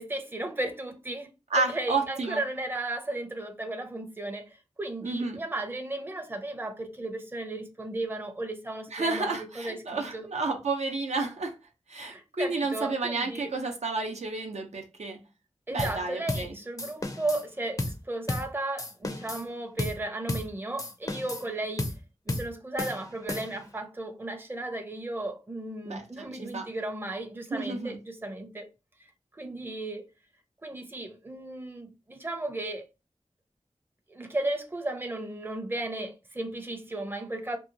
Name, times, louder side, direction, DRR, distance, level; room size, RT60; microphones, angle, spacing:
voice 1, 0.0-1.3 1.6-10.3 12.0-13.5 15.7-21.9 22.3-28.7 29.4-30.1 30.6-32.8 34.1-37.6, right 2 dB, 20° right, 0.6 m, -35 dB
voice 2, 1.5-2.4 5.0-5.4 8.9-11.6 11.9-15.2 15.7-16.6 25.8-26.7 27.5-28.0, right 3 dB, 80° right, 0.6 m, -31 dB
sound 1, 15.8-16.0 16.3-16.5 16.8-17.4 17.8-18.0 18.3-18.5 18.8-19.5 19.8-20.0 20.3-20.5 20.8-21.5 21.8-22.0 22.3-22.5 22.8-23.7, left 2 dB, 30° left, 0.4 m, -33 dB
2.7 x 2.3 x 2.6 m
wide cardioid pair, 60°, 11 cm